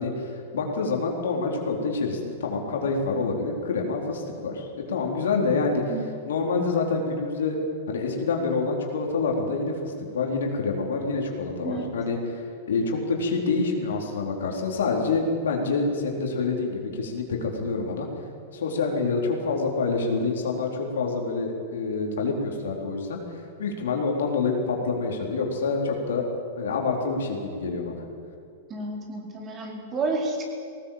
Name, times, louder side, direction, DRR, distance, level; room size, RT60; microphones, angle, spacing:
voice 1, 0.0-5.8 6.3-7.6 7.9-18.1 18.5-23.2 23.6-26.3 26.6-28.0, left 4 dB, 80° left, 1 dB, 4.0 m, -27 dB
voice 2, 5.7-6.1 11.6-11.9 28.7-30.4, right 3 dB, 30° right, 0 dB, 4.8 m, -31 dB
19.5 x 18.0 x 8.8 m, 2.4 s
hypercardioid pair, 115°, 0 cm